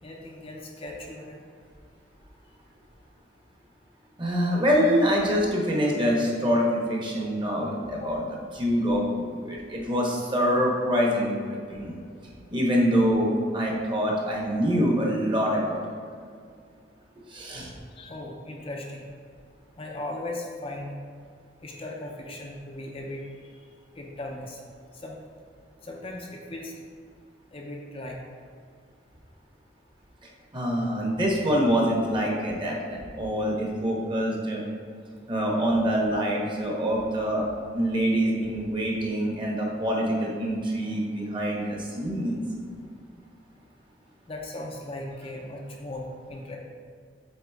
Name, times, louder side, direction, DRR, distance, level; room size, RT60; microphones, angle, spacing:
voice 1, 0.0-1.4 8.0-8.1 17.9-19.1 19.8-21.0 21.6-23.5 23.9-24.6 24.9-25.2 25.8-26.7 27.5-28.2 44.3-46.6, left 1 dB, 30° left, -1 dB, 0.6 m, -37 dB
voice 2, 4.2-8.2 8.5-11.9 12.5-15.8 17.3-17.7 30.5-34.6 35.3-37.5 37.7-42.4, equal, 25° right, -2 dB, 1.1 m, -25 dB
7.7 x 3.9 x 3.5 m, 2.2 s
head